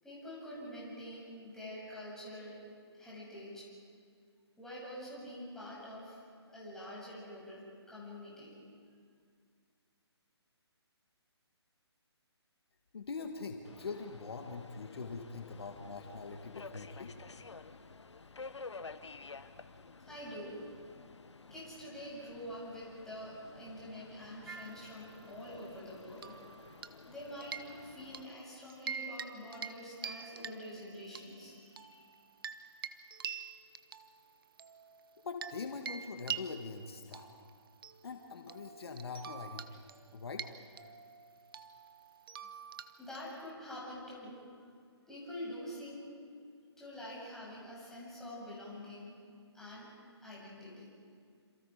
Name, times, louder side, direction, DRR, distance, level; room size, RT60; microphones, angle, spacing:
voice 1, 0.0-2.6 2.9-3.7 4.6-6.2 6.5-8.6 20.1-20.7 21.5-26.4 27.1-32.0 43.0-44.4 45.1-46.3 46.8-49.2 49.5-49.9 50.2-50.9, left 1 dB, 5° left, -8 dB, 7.8 m, -46 dB
voice 2, 12.9-17.1 35.2-37.3 38.0-39.8 40.1-40.4, left 4 dB, 60° left, 3 dB, 2.0 m, -43 dB
Subway metro underground, 13.6-28.3, left 4 dB, 80° left, 1.1 m, -52 dB
sound 1, 24.5-25.5 26.2-27.1 27.4-28.3 28.7-29.3 29.5-29.8 30.0-31.2 31.8-35.6 35.9-43.5, right 7 dB, 55° right, 1.2 m, -45 dB
28.0 x 27.5 x 5.1 m, 2.1 s
figure-of-eight pair, 150°, 14 cm